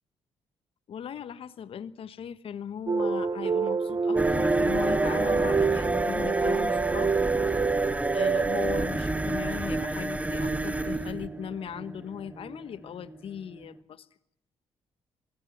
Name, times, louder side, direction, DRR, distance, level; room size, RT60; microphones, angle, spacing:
voice 1, 0.9-7.1 8.1-14.1, left 8 dB, 60° left, 14 dB, 1.4 m, -38 dB
sound 1, 2.9-8.9, right 5 dB, 40° right, 1.0 m, -27 dB
sound 2, 4.2-13.8, right 2 dB, 15° right, 2.3 m, -30 dB
26.5 x 19.5 x 7.4 m, 0.72 s
supercardioid pair, 55°, 11 cm